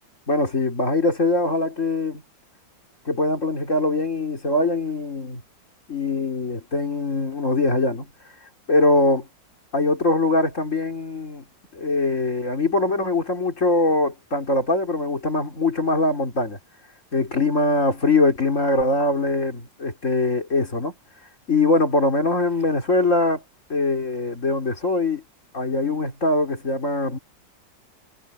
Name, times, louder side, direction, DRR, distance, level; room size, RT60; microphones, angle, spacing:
voice 1, 0.3-2.2 3.1-5.4 5.9-8.1 8.7-9.3 9.7-11.4 11.7-16.6 17.1-20.9 21.5-23.4 23.7-25.2 25.5-27.2, left 2 dB, 40° left, 4.0 m, -22 dB
omnidirectional pair, 2.0 m